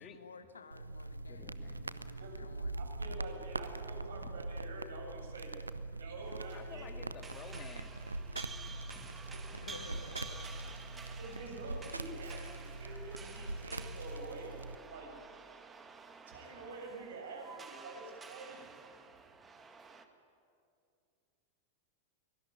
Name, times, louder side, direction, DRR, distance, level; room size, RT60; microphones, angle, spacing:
voice 1, 0.0-2.9 9.5-10.6, left 5 dB, 75° left, 10 dB, 1.7 m, -53 dB
sound 1, 0.7-14.8, right 2 dB, 80° right, 0.7 m, -43 dB
voice 2, 1.3-2.5 4.2-4.4 4.7-4.8 5.7-5.8 6.2-8.2 8.6-9.1 9.7-10.4, left 7 dB, 30° left, 6 dB, 2.5 m, -54 dB
voice 3, 2.7-5.5 6.0-6.9 9.3-9.6 10.0-10.1 11.2-15.1 16.3-18.8, right 3 dB, 65° right, 1 dB, 6.9 m, -47 dB
sound 2, 6.2-20.0, right 4 dB, 15° right, 1.9 m, -51 dB
24.0 x 20.0 x 9.9 m, 2.4 s
figure-of-eight pair, 90°, 0 cm